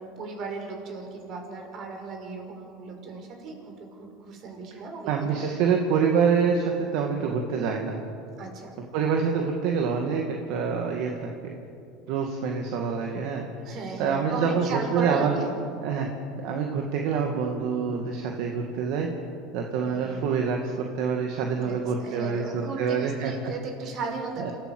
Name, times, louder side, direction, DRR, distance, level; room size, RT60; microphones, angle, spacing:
voice 1, 0.0-5.4 8.4-8.7 13.6-15.5 19.8-20.2 21.5-24.5, right 3 dB, 50° right, 3 dB, 5.2 m, -36 dB
voice 2, 5.1-8.0 8.9-11.5 12.1-13.4 14.0-15.4 15.8-16.1 16.4-19.1 19.5-23.5 24.4-24.5, right 6 dB, 65° right, 2 dB, 2.2 m, -26 dB
27.0 x 14.5 x 7.9 m, 2.6 s
supercardioid pair, 110°, 0 cm